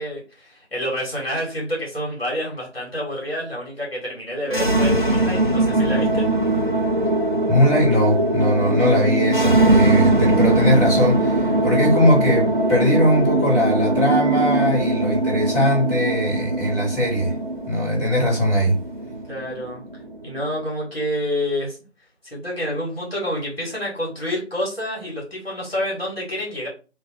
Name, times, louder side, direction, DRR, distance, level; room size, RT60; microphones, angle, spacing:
voice 1, 0.0-6.3 19.3-19.8 20.2-21.8 22.2-26.7, equal, 60° left, 1.9 m, -28 dB
sound 1, 4.4-20.5, right 2 dB, 45° right, 0.7 m, -21 dB
voice 2, 7.5-17.4 17.7-18.8, equal, 20° left, 2.0 m, -20 dB
3.2 x 2.2 x 4.2 m
figure-of-eight pair, 170°, 35 cm